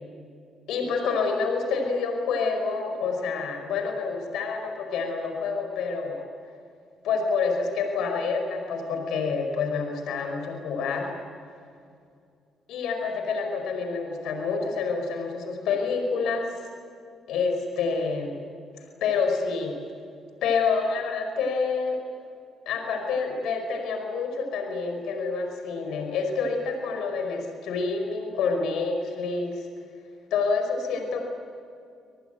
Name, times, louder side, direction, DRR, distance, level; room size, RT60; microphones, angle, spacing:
voice 1, 0.7-6.3 7.0-11.1 12.7-16.5 17.3-18.4 18.8-19.7 20.4-22.0 22.6-29.7 30.3-31.2, left 4 dB, 85° left, 4 dB, 5.0 m, -28 dB
27.0 x 20.0 x 9.2 m, 2.4 s
cardioid pair, 90°, 0 cm